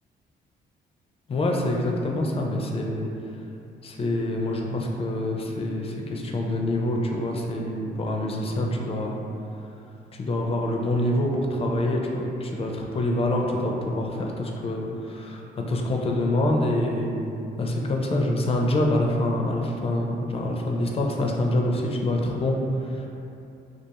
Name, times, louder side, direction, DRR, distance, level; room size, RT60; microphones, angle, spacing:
voice 1, 1.3-3.1 3.8-9.2 10.2-17.2 17.6-23.1, left 1 dB, 30° left, 0 dB, 0.4 m, -26 dB
2.4 x 2.3 x 2.8 m, 2.7 s
cardioid pair, 80°, 19 cm